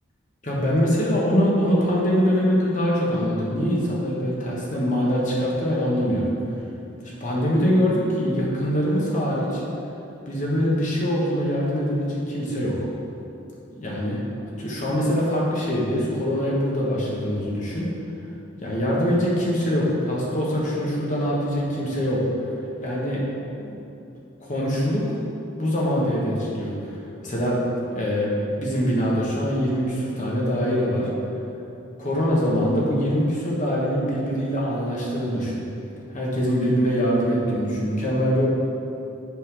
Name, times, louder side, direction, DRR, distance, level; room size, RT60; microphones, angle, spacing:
voice 1, 0.4-6.3 7.2-9.6 10.3-12.7 13.8-14.2 14.6-17.9 18.6-22.2 22.8-23.2 23.6-23.7 24.4-25.2 25.6-27.6 27.9-28.3 28.6-31.1 32.0-35.6 36.1-38.5, equal, 35° left, -5 dB, 1.2 m, -23 dB
7.3 x 5.4 x 3.8 m, 2.8 s
head